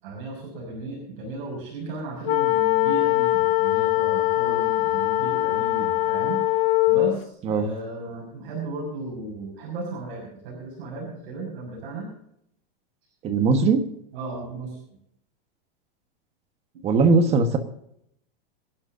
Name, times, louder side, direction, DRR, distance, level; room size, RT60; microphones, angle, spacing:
voice 1, 0.0-6.4 6.9-12.1 14.1-14.8 16.7-16.8 17.1-17.3, right 2 dB, 60° right, -1 dB, 6.2 m, -35 dB
sound 1, 2.2-7.2, left 19 dB, 60° left, 0.5 m, -22 dB
voice 2, 13.2-13.9 16.8-17.6, right 4 dB, 20° right, 7 dB, 1.3 m, -19 dB
25.5 x 11.5 x 2.7 m, 0.73 s
supercardioid pair, 165°, 30 cm